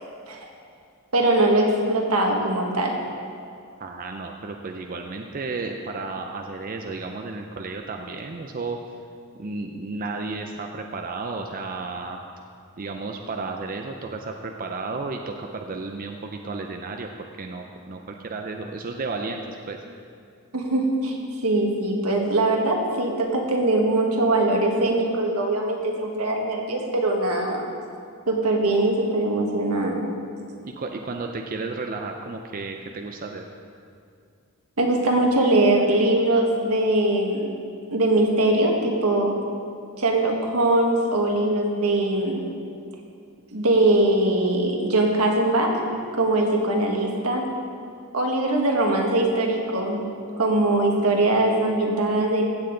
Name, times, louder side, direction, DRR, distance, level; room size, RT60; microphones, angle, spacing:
voice 1, 1.1-3.0 20.5-21.2 21.4-27.7 28.3-30.1 34.8-37.5 37.9-39.4 40.0-42.5 43.5-45.8 46.1-47.5 48.1-50.1 50.4-52.4, right 2 dB, 85° right, 1 dB, 1.5 m, -21 dB
voice 2, 3.8-8.8 9.4-12.2 12.8-17.1 17.4-19.8 30.6-33.4, right 3 dB, 40° right, 3 dB, 0.5 m, -33 dB
15.0 x 7.9 x 3.8 m, 2.3 s
head